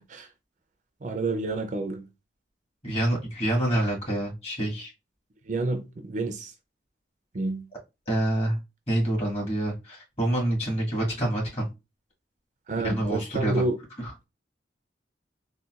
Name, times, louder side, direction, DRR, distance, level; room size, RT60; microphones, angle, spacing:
voice 1, 1.0-2.1 5.5-6.5 7.3-7.7 12.7-13.8, right 2 dB, 45° right, 0.5 m, -29 dB
voice 2, 2.8-4.9 8.1-8.6 8.9-11.7 12.8-13.6 14.0-14.1, right 1 dB, 35° left, 1.7 m, -27 dB
3.9 x 2.3 x 2.4 m
head